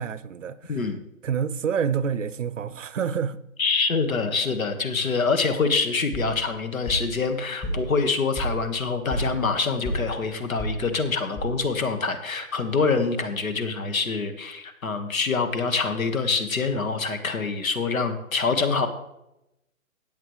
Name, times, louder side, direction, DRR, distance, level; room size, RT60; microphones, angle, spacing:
voice 1, 0.0-0.8 1.2-3.4, right 7 dB, 60° right, 0.7 m, -28 dB
voice 2, 0.7-1.0 3.6-18.9, left 4 dB, 70° left, 1.7 m, -25 dB
sound 1, 6.1-11.9, right 1 dB, 15° left, 1.6 m, -33 dB
15.0 x 8.8 x 3.2 m
hypercardioid pair, 150°, 42 cm